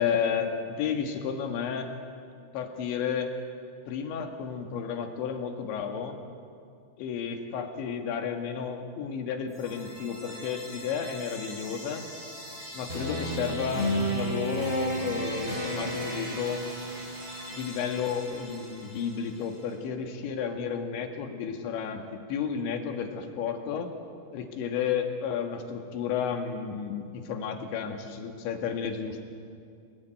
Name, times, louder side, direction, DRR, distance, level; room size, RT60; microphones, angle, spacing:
voice 1, 0.0-1.9 2.5-3.3 3.9-6.2 7.0-12.0 12.7-16.6 17.5-23.9 24.3-29.2, left 7 dB, 70° left, 5 dB, 4.0 m, -32 dB
sound 1, 9.5-19.4, equal, 15° right, 7.5 m, -34 dB
27.0 x 19.5 x 9.1 m, 2.4 s
omnidirectional pair, 5.6 m